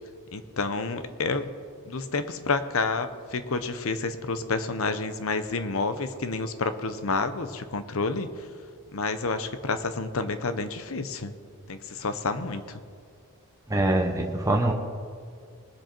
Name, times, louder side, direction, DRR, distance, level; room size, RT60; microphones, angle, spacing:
voice 1, 0.3-1.5 1.8-8.5 8.9-11.3 11.7-12.8, left 3 dB, 65° left, 10 dB, 0.8 m, -29 dB
voice 2, 13.7-14.7, right 1 dB, 15° right, 2 dB, 0.8 m, -24 dB
20.5 x 7.6 x 4.5 m, 2.3 s
head